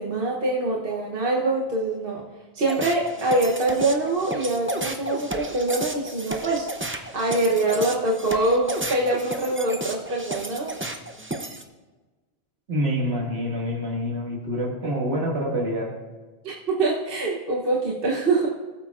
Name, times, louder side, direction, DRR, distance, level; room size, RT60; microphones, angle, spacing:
voice 1, 0.0-2.2 2.5-6.7 7.1-10.8 16.4-18.5, right 2 dB, 60° right, -2 dB, 1.2 m, -24 dB
sound 1, 2.6-11.6, right 1 dB, 15° right, 0.5 m, -33 dB
voice 2, 12.7-15.9, equal, 75° right, -2 dB, 2.3 m, -26 dB
19.5 x 8.4 x 2.5 m, 1.3 s
omnidirectional pair, 1.1 m